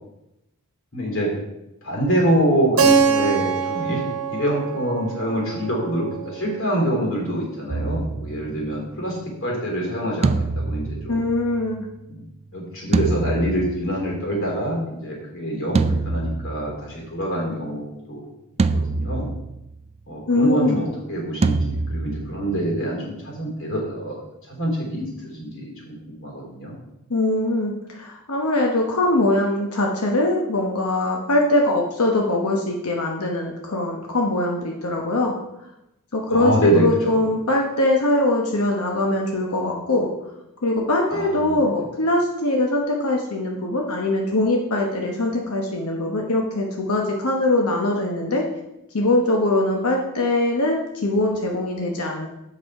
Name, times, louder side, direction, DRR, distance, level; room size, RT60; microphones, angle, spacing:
voice 1, 0.9-1.3 1.8-11.3 12.1-12.2 12.5-18.3 18.7-19.3 20.1-24.2 24.5-26.7 36.3-37.3 41.1-41.6, right 1 dB, 65° left, -1 dB, 3.6 m, -25 dB
Keyboard (musical), 2.8-7.3, right 5 dB, 75° right, 1.0 m, -24 dB
sound 1, 7.7-9.0 10.2-11.9 12.9-14.3 15.7-17.1 18.6-19.8 21.4-22.8, right 3 dB, 30° right, 0.3 m, -25 dB
voice 2, 11.1-11.9 20.3-20.8 27.1-35.4 36.1-40.1 40.6-48.4 48.9-52.3, left 2 dB, 80° left, 0 dB, 1.1 m, -22 dB
7.9 x 6.5 x 4.8 m, 0.88 s
head